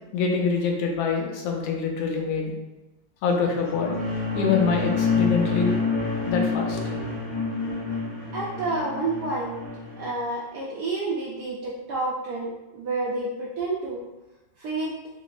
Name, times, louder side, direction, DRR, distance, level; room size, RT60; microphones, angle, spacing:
voice 1, 0.1-2.5 3.2-4.0 4.3-5.9 6.3-6.8, left 5 dB, 90° left, 1 dB, 1.4 m, -25 dB
sound 1, 3.4-10.1, left 4 dB, 35° left, 1.7 m, -28 dB
voice 2, 8.3-9.6 10.0-14.1 14.6-15.0, right 2 dB, 75° right, -4 dB, 0.9 m, -29 dB
3.4 x 2.9 x 2.4 m, 1.0 s
omnidirectional pair, 2.2 m